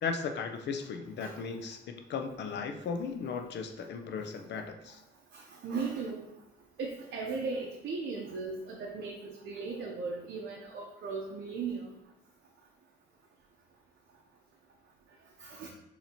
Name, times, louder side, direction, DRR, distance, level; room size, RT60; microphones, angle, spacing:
voice 1, 0.0-5.0, left 5 dB, 60° left, 5 dB, 0.5 m, -36 dB
voice 2, 5.3-6.3 6.8-11.9 15.4-15.7, right 4 dB, 60° right, -1 dB, 0.6 m, -37 dB
4.1 x 2.8 x 2.8 m, 0.90 s
cardioid pair, 90°, 20 cm